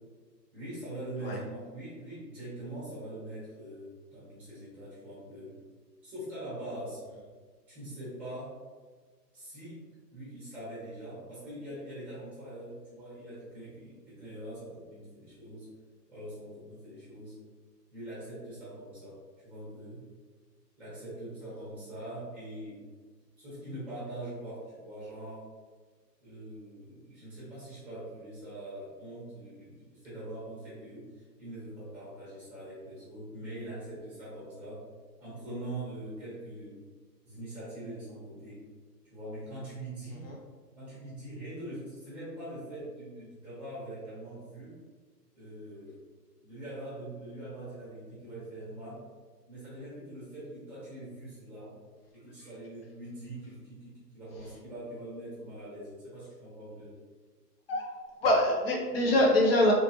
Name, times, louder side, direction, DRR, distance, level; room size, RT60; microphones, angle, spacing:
voice 1, 0.5-5.6 6.0-7.0 7.7-8.6 9.3-15.7 16.1-17.4 17.9-20.0 20.8-22.8 23.4-25.4 26.2-34.8 35.2-36.8 37.2-38.6 39.1-40.3 40.7-44.8 45.3-46.0 46.4-49.0 49.5-51.7 52.1-56.9, right 1 dB, 5° right, -10 dB, 1.1 m, -43 dB
voice 2, 58.2-59.7, left 1 dB, 40° left, -1 dB, 0.6 m, -24 dB
3.4 x 2.8 x 2.7 m, 1.4 s
hypercardioid pair, 160°, 50 cm